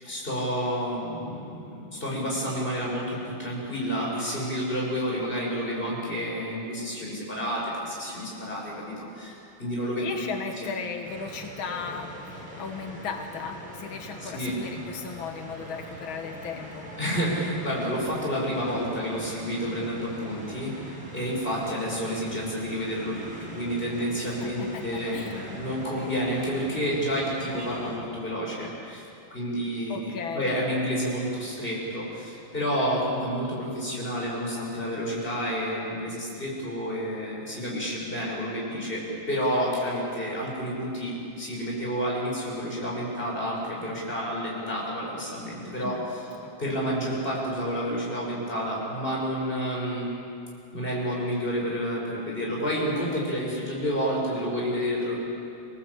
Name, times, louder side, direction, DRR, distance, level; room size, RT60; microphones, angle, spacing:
voice 1, 0.0-9.3 9.6-10.1 10.6-10.7 14.2-14.5 17.0-29.0 29.3-46.2 46.6-50.1 50.7-55.2, equal, 25° left, -4 dB, 6.5 m, -30 dB
voice 2, 10.0-16.9 24.4-25.4 29.9-30.5 45.8-46.0 46.4-46.5, left 5 dB, 85° left, 5 dB, 2.1 m, -36 dB
sound 1, 11.0-28.0, equal, 90° right, 5.5 m, -42 dB
27.0 x 18.0 x 8.3 m, 2.6 s
omnidirectional pair, 2.2 m